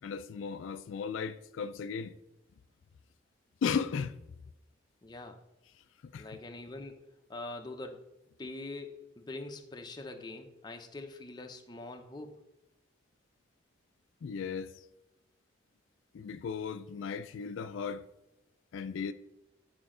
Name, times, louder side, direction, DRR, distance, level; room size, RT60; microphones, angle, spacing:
voice 1, 0.0-2.2 3.6-4.2 6.1-6.3 14.2-14.9 16.1-18.0 18.7-19.1, left 6 dB, 80° left, 0.3 m, -35 dB
voice 2, 5.0-5.4 6.2-7.0 7.3-8.1 8.4-12.4, left 2 dB, 20° left, 0.6 m, -43 dB
9.2 x 5.1 x 3.7 m
head